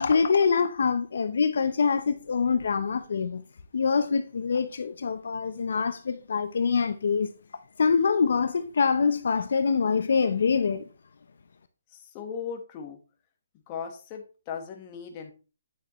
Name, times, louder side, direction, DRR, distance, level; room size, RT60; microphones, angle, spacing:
voice 1, 0.0-3.4 3.7-7.3 7.8-10.8, left 5 dB, 65° left, 0.7 m, -25 dB
voice 2, 11.9-13.0 13.7-15.3, left 7 dB, 25° left, 1.4 m, -37 dB
9.4 x 6.5 x 3.1 m
hypercardioid pair, 165°, 0 cm